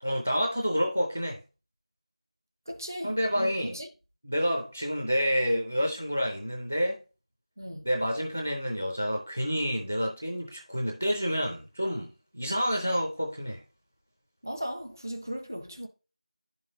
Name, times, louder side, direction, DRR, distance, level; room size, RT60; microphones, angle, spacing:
voice 1, 0.0-1.4 3.0-3.8 4.2-7.0 7.8-13.6, equal, 15° left, 0.5 m, -29 dB
voice 2, 2.7-3.9 7.6-7.9 14.4-15.9, equal, 25° right, 0.8 m, -37 dB
10.5 x 5.5 x 2.7 m
figure-of-eight pair, 180°, 4 cm